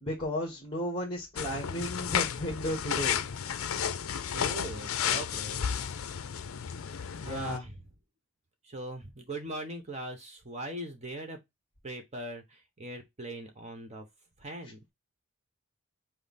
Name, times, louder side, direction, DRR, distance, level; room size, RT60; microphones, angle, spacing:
voice 1, 0.0-3.2 7.2-7.6, left 1 dB, 25° left, 1.3 m, -34 dB
sound 1, 1.4-7.6, left 8 dB, 65° left, 0.5 m, -32 dB
voice 2, 4.3-6.0 7.2-7.8 8.6-11.4 11.8-14.1 14.4-14.8, right 1 dB, 30° right, 1.0 m, -40 dB
5.5 x 2.0 x 4.1 m
head